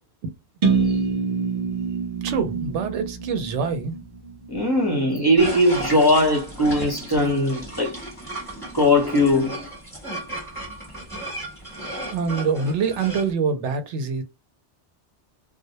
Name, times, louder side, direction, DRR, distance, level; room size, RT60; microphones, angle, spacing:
sound 1, 0.6-4.5, right 5 dB, 50° right, 0.7 m, -25 dB
voice 1, 2.2-4.0 12.1-14.2, right 5 dB, 90° right, 0.9 m, -25 dB
voice 2, 4.5-7.9 8.7-9.7, left 1 dB, 25° left, 0.7 m, -19 dB
sound 2, 5.4-13.3, right 1 dB, 5° left, 1.0 m, -35 dB
2.2 x 2.1 x 2.8 m
omnidirectional pair, 1.2 m